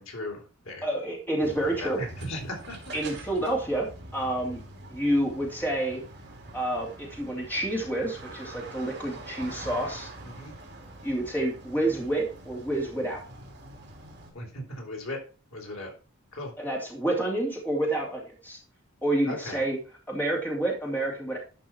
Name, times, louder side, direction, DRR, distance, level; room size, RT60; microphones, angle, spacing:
voice 1, 0.0-0.9 1.5-2.8 10.3-10.5 14.3-15.2 15.5-15.9 16.3-16.5 19.2-19.6, left 1 dB, 75° left, 2 dB, 3.2 m, -37 dB
voice 2, 0.8-2.0 2.9-4.6 4.9-6.0 6.5-10.1 11.0-13.2 16.6-18.6 19.0-19.8 20.1-21.4, right 1 dB, 10° left, -2 dB, 2.7 m, -28 dB
sound 1, 1.4-14.3, right 2 dB, 50° right, 3.2 m, -45 dB
12.0 x 5.3 x 4.4 m, 0.34 s
head